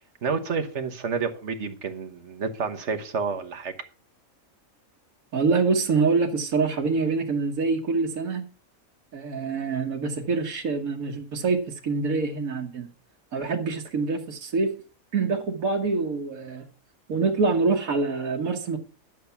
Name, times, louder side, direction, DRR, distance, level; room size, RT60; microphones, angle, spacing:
voice 1, 0.2-3.7, right 5 dB, 60° right, 1.4 m, -29 dB
voice 2, 5.3-8.4 9.1-12.9 13.3-14.7 15.1-16.6 17.1-18.8, right 4 dB, 80° right, 1.6 m, -25 dB
11.0 x 6.8 x 5.7 m
omnidirectional pair, 1.4 m